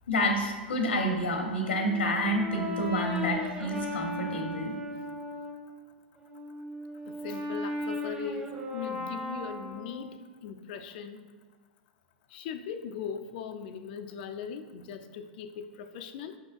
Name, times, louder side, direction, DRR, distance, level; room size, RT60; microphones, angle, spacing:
voice 1, 0.1-4.7, equal, 90° left, 2 dB, 0.9 m, -29 dB
Brass instrument, 1.6-5.6 6.2-10.2, left 1 dB, 20° right, 0.8 m, -37 dB
voice 2, 7.1-8.5 8.7-11.2 12.3-16.4, left 7 dB, 60° left, 7 dB, 0.4 m, -39 dB
5.2 x 3.8 x 2.5 m, 1.5 s
hypercardioid pair, 105°, 6 cm